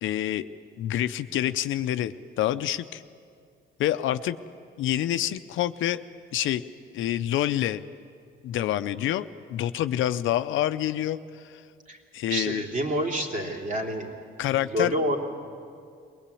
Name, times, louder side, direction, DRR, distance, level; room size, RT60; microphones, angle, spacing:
voice 1, 0.0-0.5 0.8-3.0 3.8-4.4 4.8-6.0 6.3-6.6 6.9-7.8 8.4-11.2 12.1-12.6 14.4-15.0, left 12 dB, 80° left, 12 dB, 0.7 m, -27 dB
voice 2, 12.3-14.1 14.6-15.2, equal, 40° right, 1 dB, 3.3 m, -28 dB
22.5 x 19.0 x 8.5 m, 2.3 s
cardioid pair, 90°, 20 cm